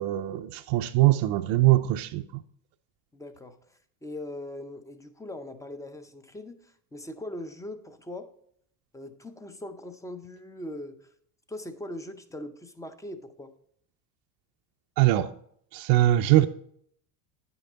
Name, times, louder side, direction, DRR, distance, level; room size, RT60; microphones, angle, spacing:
voice 1, 0.0-2.4 15.0-15.3 15.7-16.5, right 15 dB, 55° right, 0.6 m, -22 dB
voice 2, 3.1-3.6 4.0-8.3 8.9-11.0 11.5-13.5, left 1 dB, 5° left, 0.5 m, -40 dB
9.4 x 5.8 x 3.9 m
supercardioid pair, 110°, 49 cm